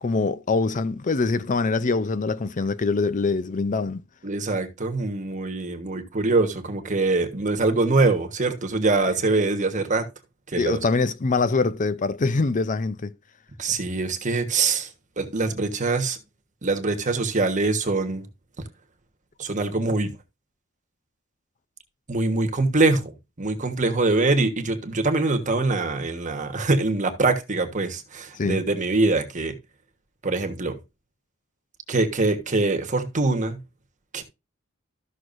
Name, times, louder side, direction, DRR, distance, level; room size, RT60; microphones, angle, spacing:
voice 1, 0.0-4.0 10.6-13.1 28.4-28.6, left 3 dB, 40° left, 0.5 m, -24 dB
voice 2, 4.2-10.0 10.5-10.8 13.6-14.9 15.2-16.2 16.6-18.3 19.4-20.1 22.1-29.5 30.2-30.8 31.9-33.6 34.1-34.2, right 3 dB, 40° right, 1.3 m, -23 dB
13.5 x 6.2 x 2.6 m
head